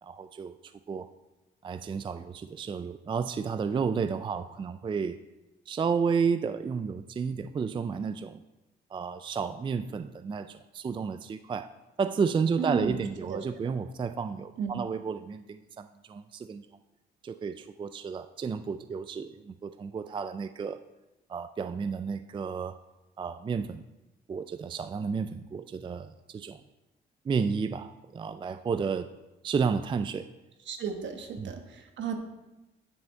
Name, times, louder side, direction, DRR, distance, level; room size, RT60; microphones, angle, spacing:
voice 1, 0.0-1.1 1.6-5.2 5.7-8.4 8.9-11.7 12.0-16.7 17.2-20.8 21.3-22.8 23.2-23.8 24.3-26.6 27.3-29.1 29.4-30.3 31.4-31.5, right 5 dB, 25° right, 12 dB, 0.3 m, -32 dB
voice 2, 12.6-13.0 13.3-13.4 14.6-14.9 30.7-32.2, right 6 dB, 70° right, 6 dB, 1.2 m, -34 dB
10.0 x 6.2 x 4.4 m, 1.0 s
cardioid pair, 90°, 20 cm